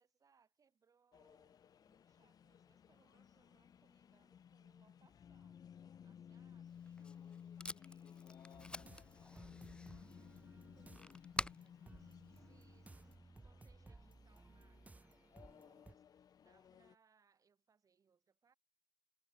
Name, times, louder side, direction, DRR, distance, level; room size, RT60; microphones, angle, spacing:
voice 1, 0.0-5.6 6.0-18.6, right 6 dB, 45° right, 3.4 m, -76 dB
sound 1, 1.1-16.9, left 8 dB, 50° left, 0.7 m, -58 dB
Packing tape duct tape, 6.7-13.1, left 2 dB, 10° left, 0.7 m, -49 dB
sound 2, 8.5-16.0, right 2 dB, 20° right, 0.8 m, -60 dB
hypercardioid pair, 50°, 8 cm